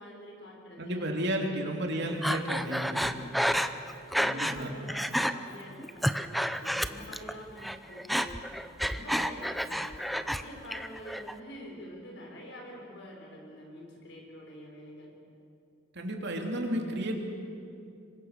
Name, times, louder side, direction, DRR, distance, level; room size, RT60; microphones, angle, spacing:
voice 1, 0.0-1.0 1.4-2.2 2.7-3.4 4.1-15.1, equal, 65° left, -1 dB, 6.4 m, -47 dB
voice 2, 0.8-3.1 4.2-4.7 15.9-17.3, right 1 dB, 60° right, 2 dB, 3.2 m, -32 dB
Breathing, 2.2-4.6 4.9-5.3 5.8-7.3 7.6-10.4 10.7-11.3, equal, ahead, 0.7 m, -30 dB
26.0 x 24.0 x 6.8 m, 2.6 s
head